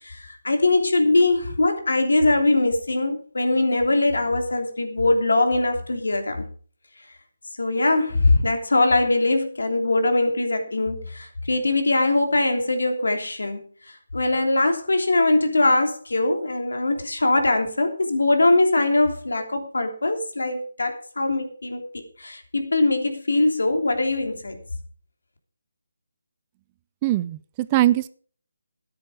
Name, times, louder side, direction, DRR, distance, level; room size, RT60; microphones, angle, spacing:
voice 1, 0.0-6.5 7.6-24.6, left 2 dB, 85° left, 3.2 m, -22 dB
voice 2, 27.0-28.1, right 15 dB, 20° right, 0.5 m, -21 dB
12.5 x 10.0 x 5.0 m
figure-of-eight pair, 160°, 0 cm